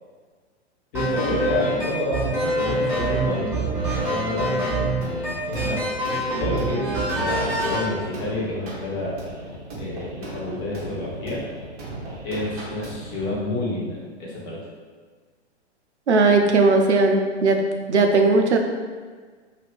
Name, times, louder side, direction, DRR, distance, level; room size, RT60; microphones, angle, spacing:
voice 1, 0.9-3.6 3.9-4.6 5.5-9.2 9.7-11.4 12.2-14.6, left 2 dB, 35° left, -6 dB, 1.1 m, -29 dB
sound 1, 0.9-7.9, right 1 dB, 5° right, 1.2 m, -25 dB
sound 2, 5.0-13.4, right 1 dB, 35° right, 0.7 m, -37 dB
voice 2, 16.1-17.6 17.9-18.6, right 3 dB, 80° right, 4 dB, 0.5 m, -17 dB
2.6 x 2.5 x 3.4 m, 1.5 s
figure-of-eight pair, 105°, 34 cm